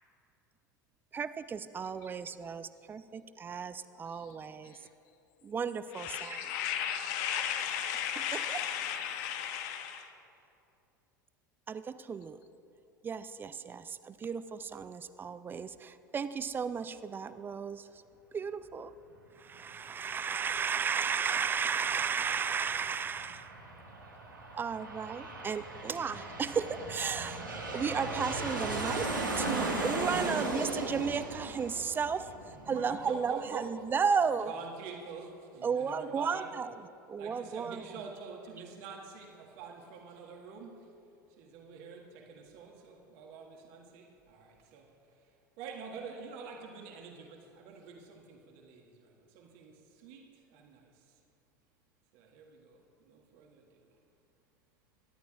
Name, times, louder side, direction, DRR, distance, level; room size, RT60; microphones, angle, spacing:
voice 1, 1.1-4.8 5.4-6.4 8.5-8.6 11.7-12.4 13.0-17.9 18.3-18.9 19.4-23.5 24.5-27.5 27.7-29.1 29.4-34.5 35.6-37.8, right 6 dB, 20° right, 0.4 m, -34 dB
voice 2, 5.9-10.1, left 9 dB, 50° left, 1.1 m, -35 dB
Aircraft, 21.9-33.1, right 2 dB, 85° right, 1.7 m, -37 dB
voice 3, 32.5-33.7 34.3-36.5 37.2-40.8 41.4-44.9 45.6-50.8 52.1-53.8, right 5 dB, 50° right, 1.8 m, -46 dB
23.0 x 11.5 x 2.4 m
figure-of-eight pair, 80°, 10 cm